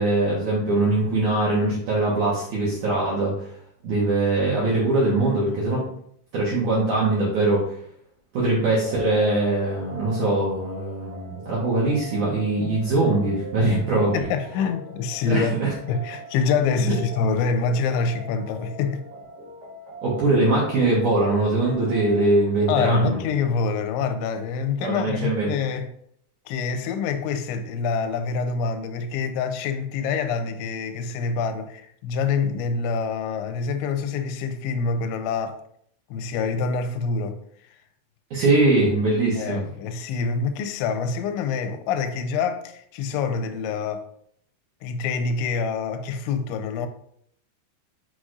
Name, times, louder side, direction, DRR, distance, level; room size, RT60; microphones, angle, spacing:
voice 1, 0.0-3.6 3.8-5.8 6.3-7.8 8.3-14.2 15.3-15.7 20.0-23.2 24.8-25.5 38.3-39.6, right 2 dB, 75° right, 1.8 m, -22 dB
sound 1, 8.8-22.5, right 1 dB, 55° right, 3.0 m, -41 dB
voice 2, 14.1-15.6 15.9-19.0 22.7-25.9 26.5-35.6 36.1-37.4 37.7-37.8 39.4-44.0 44.8-46.9, left 5 dB, 85° left, 2.9 m, -26 dB
6.2 x 5.9 x 2.6 m
omnidirectional pair, 5.5 m